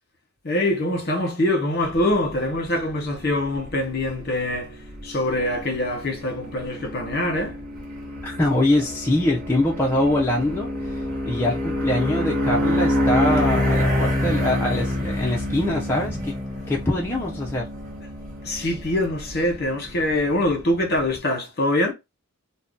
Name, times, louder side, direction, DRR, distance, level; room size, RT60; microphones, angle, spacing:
voice 1, 0.4-4.7 5.0-7.6 18.4-21.9, left 1 dB, 50° left, 1.0 m, -24 dB
sound 1, 1.9-21.2, left 1 dB, 40° right, 0.8 m, -28 dB
voice 2, 8.2-16.3 16.7-17.7, left 1 dB, 10° left, 0.4 m, -23 dB
2.7 x 2.2 x 3.6 m
head